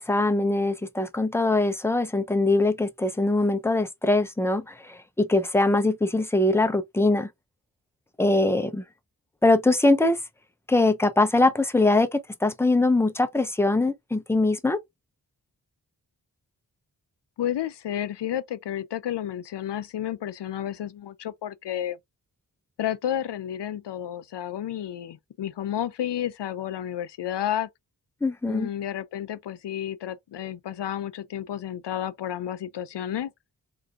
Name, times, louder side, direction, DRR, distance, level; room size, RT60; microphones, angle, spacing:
voice 1, 0.0-7.3 8.2-8.8 9.4-10.2 10.7-14.8 28.2-28.7, left 2 dB, 5° left, 0.5 m, -22 dB
voice 2, 17.4-22.0 22.8-27.7 28.4-33.3, left 11 dB, 85° left, 0.6 m, -31 dB
3.9 x 2.6 x 2.3 m
wide cardioid pair, 95°, 41 cm